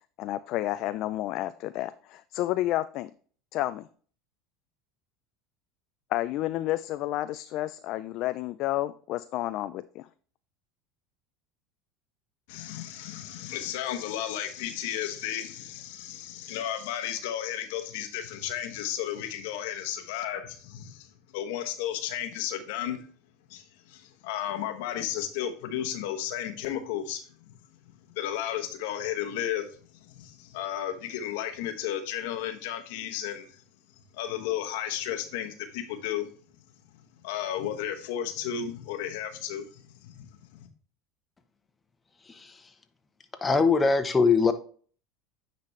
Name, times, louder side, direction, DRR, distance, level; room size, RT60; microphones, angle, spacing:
voice 1, 0.2-3.1 3.5-3.9 6.1-10.1, left 15 dB, 55° left, 12 dB, 0.3 m, -30 dB
voice 2, 12.5-23.0 23.5-27.5 28.2-29.7 30.0-33.6 34.1-36.3 37.2-40.3 40.6-40.7, left 10 dB, 70° left, 8 dB, 1.0 m, -33 dB
voice 3, 42.3-42.7 43.4-44.5, left 4 dB, 20° left, 8 dB, 1.0 m, -22 dB
9.6 x 4.1 x 3.2 m, 0.43 s
hypercardioid pair, 90°, 0 cm